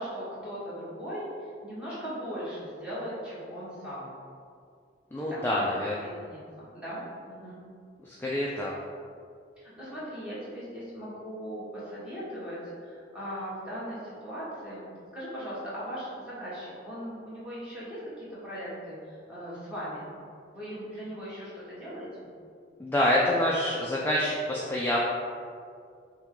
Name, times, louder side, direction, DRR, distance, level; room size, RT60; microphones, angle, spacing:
voice 1, 0.0-4.1 5.3-5.6 6.0-7.6 9.6-14.8 15.1-20.1 20.5-22.3, equal, 5° right, -10 dB, 1.3 m, -39 dB
voice 2, 5.1-6.2 8.0-8.7 22.8-25.0, left 1 dB, 10° left, -5 dB, 0.3 m, -27 dB
5.7 x 2.2 x 3.7 m, 2.3 s
head